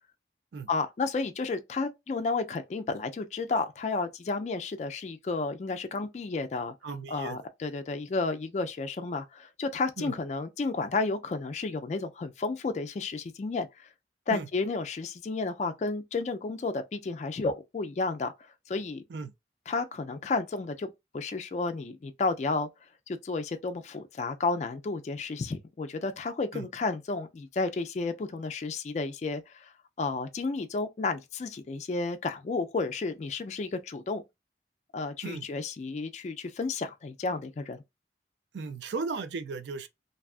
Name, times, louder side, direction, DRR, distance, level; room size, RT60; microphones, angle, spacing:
voice 1, 0.7-6.7 7.1-13.9 14.3-18.3 18.7-19.0 19.7-22.7 23.1-29.7 30.0-34.2 34.9-37.8, left 3 dB, 40° left, 0.3 m, -32 dB
voice 2, 6.8-7.4 10.0-10.1 14.3-14.5 19.1-19.3 26.5-26.7 35.2-35.5 38.5-39.9, right 4 dB, 80° right, 0.4 m, -36 dB
2.6 x 2.3 x 2.3 m
head